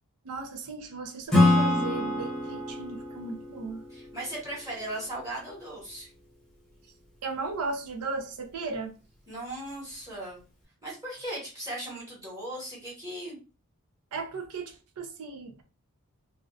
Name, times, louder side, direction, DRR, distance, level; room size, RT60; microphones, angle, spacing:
voice 1, 0.2-3.8 7.2-9.0 14.1-15.6, right 3 dB, 80° right, 0.5 m, -36 dB
Acoustic guitar / Strum, 1.3-4.9, left 2 dB, 5° left, 0.8 m, -26 dB
voice 2, 3.9-6.1 9.3-10.4 10.8-13.4, right 1 dB, 15° right, 1.1 m, -37 dB
2.4 x 2.0 x 2.5 m
head